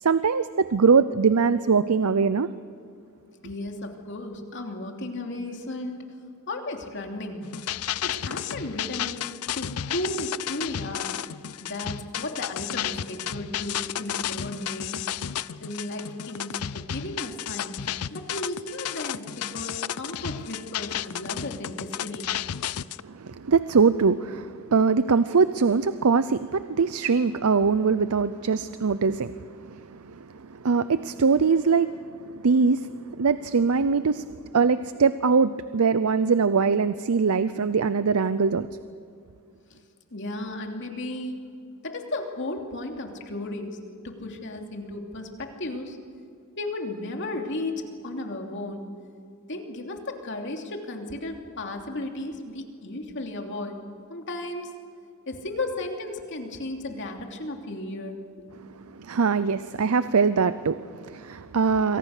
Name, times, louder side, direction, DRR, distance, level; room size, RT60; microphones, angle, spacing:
voice 1, 0.0-2.5 23.0-34.3 34.5-38.7 59.0-62.0, right 5 dB, 80° right, 13 dB, 0.6 m, -22 dB
voice 2, 3.4-6.0 6.5-7.5 8.0-11.2 11.6-15.0 15.6-17.8 18.1-22.3 39.7-39.8 40.1-41.4 41.8-43.8 44.0-46.0 46.6-48.9 49.5-53.8 54.1-54.7 55.3-58.2, left 2 dB, 55° left, 3 dB, 2.9 m, -34 dB
sound 1, 7.4-23.0, left 10 dB, 85° left, 0.5 m, -32 dB
28.0 x 24.0 x 6.6 m, 2.4 s
head